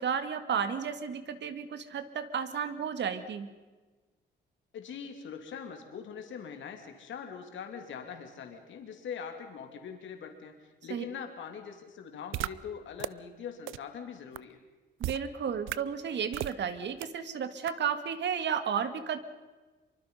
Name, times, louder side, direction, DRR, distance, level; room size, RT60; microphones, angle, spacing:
voice 1, 0.0-3.5 10.9-11.0 15.0-19.2, right 7 dB, 65° right, 10 dB, 2.0 m, -33 dB
voice 2, 4.7-14.6, left 7 dB, 70° left, 4 dB, 2.9 m, -42 dB
sound 1, 12.3-12.5 13.0-13.1 13.7-13.8 14.4-14.5 15.0-15.2 15.7-15.8 16.3-16.5 17.0-17.1 17.7-17.8, right 16 dB, 85° right, 0.6 m, -33 dB
25.5 x 24.0 x 5.6 m, 1.3 s
cardioid pair, 90°, 20 cm